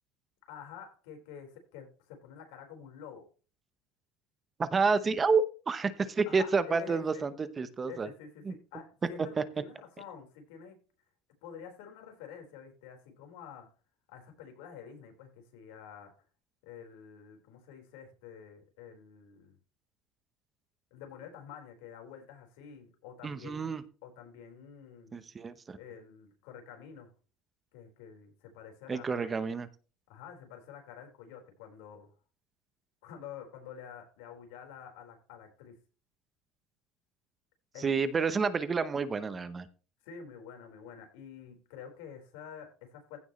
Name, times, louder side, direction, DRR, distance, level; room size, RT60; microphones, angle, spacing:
voice 1, 0.5-3.3 6.3-7.3 7.9-10.8 11.4-13.7 14.1-16.2 16.6-19.6 20.9-25.2 25.8-27.1 27.7-29.3 30.1-32.1 33.0-35.8 37.7-38.1 40.0-43.2, left 7 dB, 85° left, 4 dB, 4.5 m, -48 dB
voice 2, 4.6-8.1 8.4-8.5 9.4-9.5 23.2-23.8 25.1-25.8 28.9-29.7 37.8-39.7, right 4 dB, 20° right, 12 dB, 0.8 m, -29 dB
16.0 x 6.2 x 3.2 m, 0.35 s
cardioid pair, 160°, 0 cm